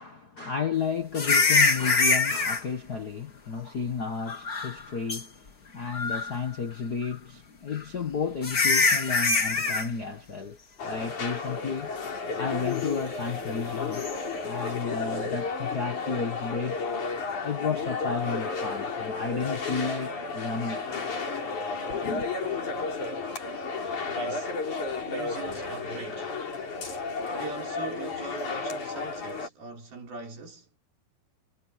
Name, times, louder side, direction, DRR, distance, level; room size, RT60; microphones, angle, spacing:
voice 1, 0.0-10.6 10.8-11.9 12.4-14.0 14.4-16.8 17.4-21.0 21.9-22.3, left 5 dB, 80° left, 0.8 m, -32 dB
sound 1, 1.1-2.6 4.3-4.8 5.1-5.2 5.9-6.4 7.8-7.9 8.4-9.9 13.9-14.1, left 4 dB, 30° left, 2.3 m, -24 dB
sound 2, 10.8-29.5, left 4 dB, 55° left, 6.0 m, -33 dB
voice 2, 24.0-24.5 25.1-26.3 27.3-30.7, right 3 dB, 80° right, 8.1 m, -41 dB
omnidirectional pair, 4.2 m